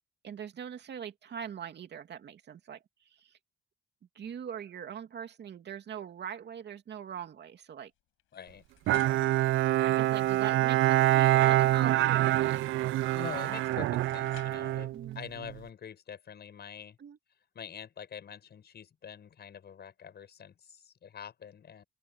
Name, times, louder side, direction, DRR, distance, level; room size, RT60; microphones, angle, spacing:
voice 1, 0.2-3.4 4.1-7.9 9.8-13.2 14.9-15.2 17.0-17.2, right 8 dB, 60° right, 2.6 m, -42 dB
sound 1, 8.2-10.6 13.0-13.1 13.6-14.8, left 14 dB, 85° left, 7.8 m, -57 dB
voice 2, 8.3-8.7 13.1-17.0 17.5-21.8, left 8 dB, 55° left, 7.4 m, -45 dB
Bowed string instrument, 8.9-15.5, right 15 dB, 80° right, 0.4 m, -26 dB
open air
cardioid pair, 90°, 20 cm